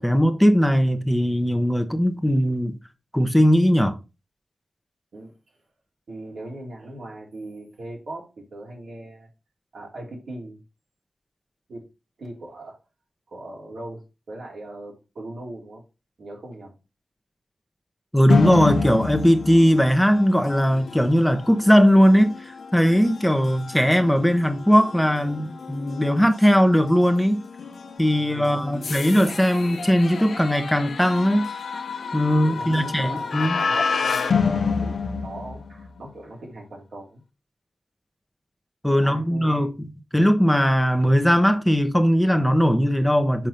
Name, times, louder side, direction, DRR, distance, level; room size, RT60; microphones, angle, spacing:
voice 1, 0.0-2.8 3.1-4.0 18.1-27.4 28.0-31.5 32.1-33.6 38.8-39.9 40.1-43.5, equal, 5° left, 1.0 m, -19 dB
voice 2, 6.1-9.3 9.7-10.6 11.7-11.8 12.2-12.8 13.3-15.8 16.2-16.8 28.1-28.9 32.4-37.2 38.9-39.7, right 1 dB, 85° right, 3.0 m, -39 dB
sound 1, 18.3-36.0, left 5 dB, 85° left, 0.9 m, -29 dB
5.9 x 5.0 x 5.1 m
cardioid pair, 65°, 0 cm